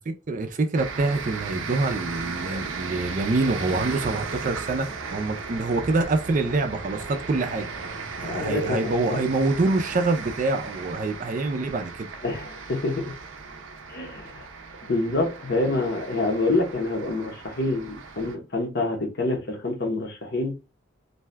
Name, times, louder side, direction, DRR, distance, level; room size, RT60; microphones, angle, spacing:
voice 1, 0.1-7.7 8.2-12.1, right 3 dB, 40° right, 0.4 m, -26 dB
sound 1, 0.8-18.4, right 4 dB, 90° right, 0.5 m, -36 dB
voice 2, 8.2-9.2 12.2-13.1 13.9-14.5 14.8-20.6, left 2 dB, 55° left, 0.8 m, -27 dB
2.6 x 2.2 x 3.2 m
head